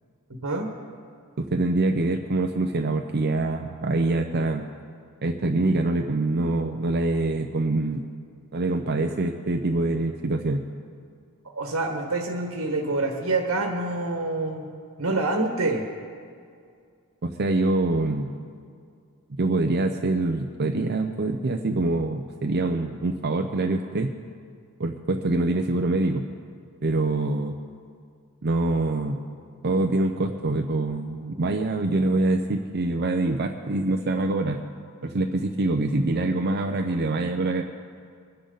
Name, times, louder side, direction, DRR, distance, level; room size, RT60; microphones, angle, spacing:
voice 1, 0.3-0.7 11.5-14.7 15.0-15.9, right 2 dB, 75° right, 1 dB, 1.6 m, -26 dB
voice 2, 1.4-4.7 5.2-8.0 8.5-10.6 17.2-18.4 19.4-24.1 24.8-26.2 26.8-27.5 28.4-29.2 29.6-34.6 35.0-37.6, right 2 dB, 50° right, 4 dB, 0.6 m, -25 dB
23.5 x 10.0 x 4.0 m, 2.2 s
head